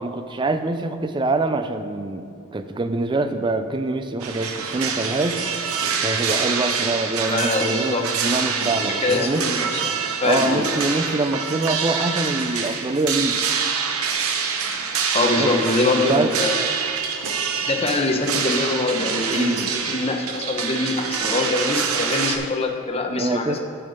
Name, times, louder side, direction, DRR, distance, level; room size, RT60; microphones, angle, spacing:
voice 1, 0.0-2.2 2.5-5.4 6.0-9.4 10.2-13.4 15.4-15.7 16.1-16.3 19.3-19.7 23.2-23.6, right 2 dB, 20° right, 9 dB, 0.3 m, -24 dB
sound 1, 4.2-22.4, right 6 dB, 75° right, 0.8 m, -26 dB
voice 2, 7.3-8.0 9.0-10.6 15.1-16.5 17.7-23.6, left 2 dB, 25° left, 3 dB, 0.7 m, -24 dB
7.3 x 6.9 x 5.1 m, 2.6 s
head